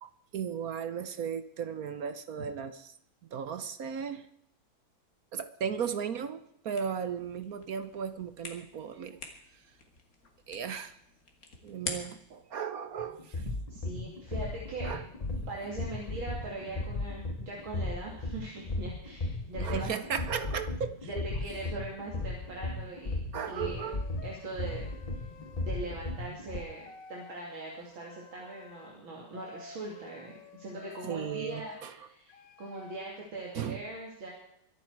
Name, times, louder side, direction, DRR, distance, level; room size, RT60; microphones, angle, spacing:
voice 1, 0.0-2.9 3.3-4.3 5.3-9.2 10.5-10.9 11.6-13.4 14.8-15.0 19.6-21.2 23.3-24.0 31.0-31.9 33.5-33.8, right 7 dB, 55° right, 11 dB, 1.1 m, -36 dB
sound 1, 6.7-12.4, left 3 dB, 45° left, 2.5 m, -45 dB
sound 2, 13.0-26.6, left 2 dB, 85° left, 0.3 m, -36 dB
voice 2, 13.7-14.9 15.5-19.9 21.0-23.2 23.5-23.9 24.2-24.9 25.6-34.3, right 2 dB, 75° right, -2 dB, 3.3 m, -41 dB
sound 3, 23.4-26.0 26.4-29.0 29.3-31.8 32.3-33.1, left 6 dB, 60° left, 1.7 m, -51 dB
24.0 x 9.2 x 4.7 m, 0.74 s
omnidirectional pair, 2.2 m